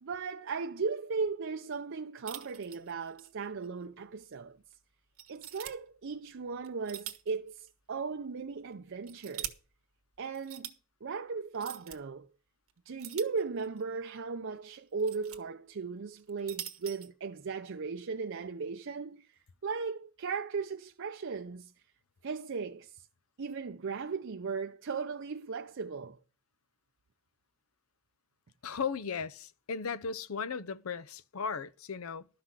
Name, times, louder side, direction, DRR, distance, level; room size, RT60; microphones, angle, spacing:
voice 1, 0.0-4.6 5.3-9.5 10.2-10.7 11.0-12.3 12.9-21.7 22.2-23.1 23.4-26.2, right 5 dB, 60° right, 0.5 m, -37 dB
sound 1, 2.3-3.3 3.6-3.7 4.3-4.4 5.2-5.7 6.6-7.4 7.7-7.8 8.7-9.5 10.3-10.8 11.5-12.0 13.0-13.8 14.7-15.4 16.2-17.1, right 12 dB, 90° right, 1.3 m, -43 dB
voice 2, 28.6-32.3, left 5 dB, 80° left, 0.7 m, -36 dB
12.5 x 5.9 x 7.4 m
head